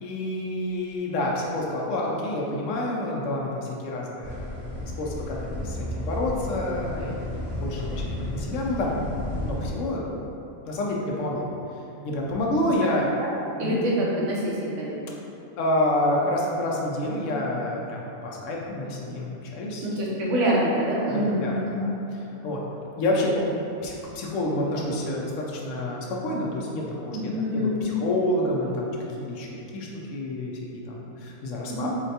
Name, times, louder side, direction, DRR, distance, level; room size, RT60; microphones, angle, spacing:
voice 1, 0.0-5.4 5.6-9.0 9.4-10.1 10.7-11.5 12.0-13.1 13.6-13.8 15.6-19.9 21.1-21.9 22.4-22.6 23.0-23.4 23.8-31.9, left 1 dB, 75° left, -2 dB, 0.9 m, -28 dB
sound 1, 4.2-9.7, left 1 dB, 40° left, 1.2 m, -33 dB
voice 2, 13.6-15.0 19.8-21.9 27.1-27.8 31.7-31.9, equal, 70° right, -5 dB, 1.0 m, -26 dB
3.9 x 2.2 x 2.7 m, 2.8 s
omnidirectional pair, 1.3 m